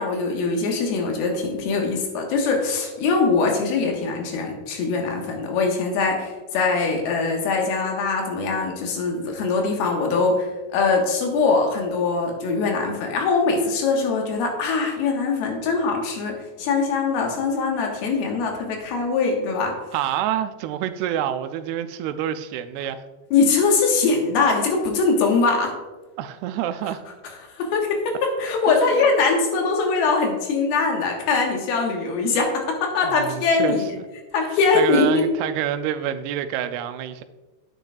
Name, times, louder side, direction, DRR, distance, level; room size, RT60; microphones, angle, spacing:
voice 1, 0.0-19.8 23.3-25.7 27.5-33.9 34.3-35.3, left 4 dB, 80° left, 3.1 m, -22 dB
voice 2, 19.9-23.0 26.2-27.0 28.7-29.0 33.0-34.1 34.8-37.2, right 10 dB, 85° right, 2.5 m, -27 dB
9.5 x 9.0 x 2.3 m
omnidirectional pair, 4.5 m